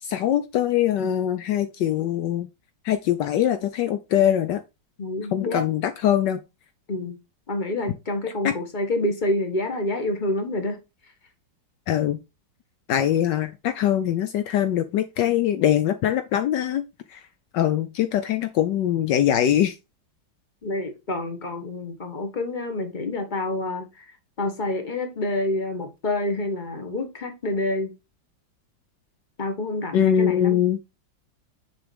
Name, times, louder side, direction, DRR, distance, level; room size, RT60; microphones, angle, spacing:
voice 1, 0.0-2.5 2.8-4.6 5.3-6.4 8.4-8.5 11.9-12.2 12.9-16.8 17.1-17.2 17.5-19.8 29.9-30.8, left 10 dB, 75° left, 1.3 m, -22 dB
voice 2, 5.0-5.7 6.9-7.2 7.5-10.8 20.6-24.0 24.4-27.9 29.4-30.6, left 2 dB, 25° left, 1.6 m, -28 dB
6.9 x 6.1 x 3.4 m
omnidirectional pair, 2.0 m